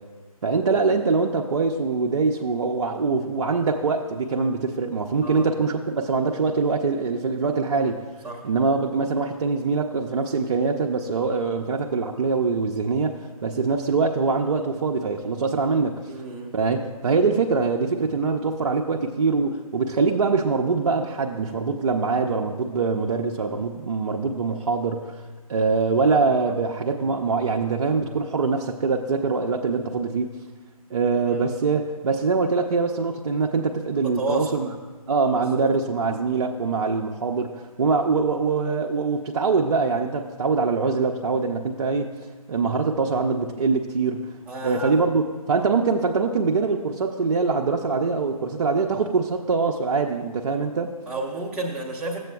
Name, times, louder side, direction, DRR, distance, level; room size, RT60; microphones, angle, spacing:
voice 1, 0.4-8.0 8.4-16.0 16.5-25.2 25.5-30.3 30.9-34.7 35.1-42.1 42.5-44.4 44.6-51.0, right 4 dB, 50° right, 0 dB, 0.5 m, -23 dB
voice 2, 16.1-16.6 26.1-26.2 26.5-26.6 34.0-34.6 35.3-35.6 38.1-38.2 44.5-45.0 51.1-52.2, right 2 dB, 5° right, -5 dB, 0.6 m, -31 dB
13.0 x 7.6 x 2.3 m, 1.3 s
figure-of-eight pair, 145°, 19 cm